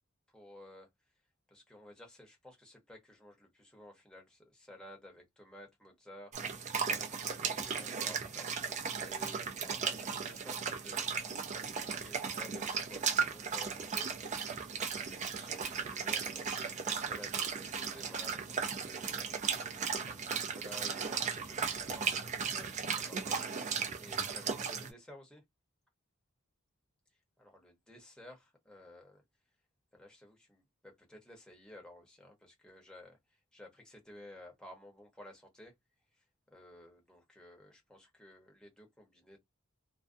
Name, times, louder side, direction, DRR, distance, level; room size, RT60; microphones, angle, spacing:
voice 1, 0.3-0.9 1.5-6.6 6.8-14.1 14.9-19.5 19.9-22.1 22.4-23.4 24.0-25.4 27.4-29.2 29.9-35.7 36.1-39.4, left 1 dB, 5° left, 0.8 m, -55 dB
sound 1, 6.3-24.9, right 6 dB, 35° right, 0.4 m, -36 dB
2.3 x 2.2 x 2.5 m
head